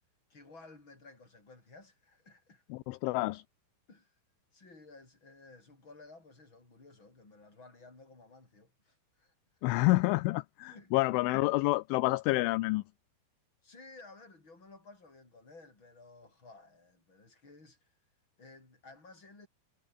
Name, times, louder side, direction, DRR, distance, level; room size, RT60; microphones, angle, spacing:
voice 1, 0.3-2.6 3.9-4.2 4.5-9.3 10.7-10.9 13.6-17.9 18.4-19.5, left 3 dB, 20° left, 7.7 m, -55 dB
voice 2, 2.7-3.4 9.6-12.8, left 21 dB, 80° left, 3.0 m, -28 dB
omnidirectional pair, 5.9 m